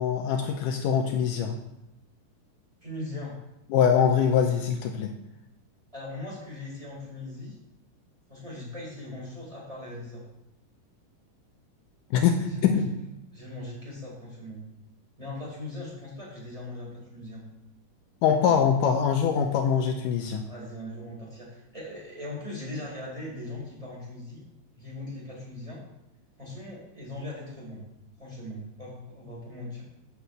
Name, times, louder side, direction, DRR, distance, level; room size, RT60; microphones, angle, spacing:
voice 1, 0.0-1.6 3.7-5.1 12.1-12.9 18.2-20.4, left 7 dB, 80° left, 4 dB, 2.2 m, -23 dB
voice 2, 2.8-3.4 5.9-7.6 8.3-10.2 12.4-12.9 13.3-14.6 15.2-17.4 20.4-24.4 24.8-25.8 26.4-27.9 28.2-29.8, left 1 dB, 10° right, -5 dB, 4.5 m, -39 dB
7.1 x 7.0 x 8.0 m, 0.87 s
omnidirectional pair, 3.9 m